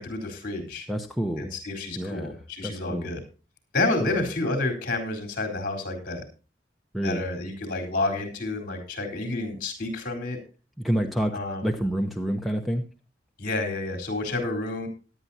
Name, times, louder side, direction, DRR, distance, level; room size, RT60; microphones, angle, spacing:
voice 1, 0.0-0.9 1.4-3.2 3.7-6.2 7.0-10.4 11.3-11.6 13.4-14.9, left 2 dB, 50° left, 3 dB, 4.1 m, -29 dB
voice 2, 0.9-1.5 2.0-3.1 4.0-4.2 6.9-7.2 10.8-12.8, right 1 dB, ahead, 1 dB, 0.8 m, -28 dB
17.5 x 11.5 x 2.8 m, 0.33 s
head